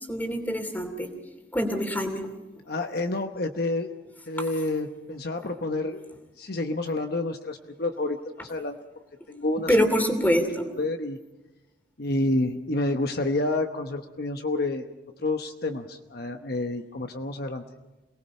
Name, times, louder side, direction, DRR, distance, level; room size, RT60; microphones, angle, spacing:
voice 1, 0.1-1.1 1.5-2.3 9.7-10.6, equal, 10° left, 5 dB, 2.8 m, -24 dB
voice 2, 2.7-3.9 4.3-6.0 6.4-8.8 9.3-9.8 10.8-11.2 12.0-14.8 15.2-17.6, left 2 dB, 55° left, 5 dB, 1.0 m, -29 dB
27.5 x 19.0 x 5.6 m, 1.1 s
head